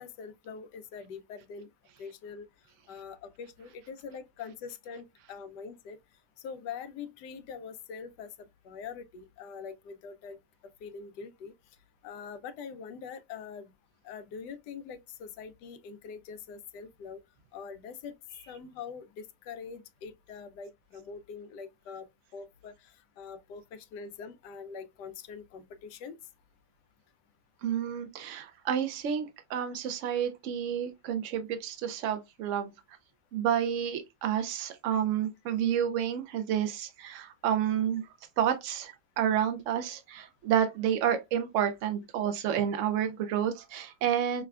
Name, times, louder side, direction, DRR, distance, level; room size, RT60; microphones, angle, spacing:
voice 1, 0.0-1.7 2.0-2.5 2.9-6.0 6.4-11.5 12.0-13.7 14.0-17.2 17.5-18.1 18.5-26.2, left 6 dB, 85° left, 1.2 m, -44 dB
voice 2, 27.6-32.7 33.3-38.1 38.4-44.4, right 9 dB, 75° right, 0.7 m, -30 dB
5.6 x 2.2 x 2.3 m
omnidirectional pair, 1.8 m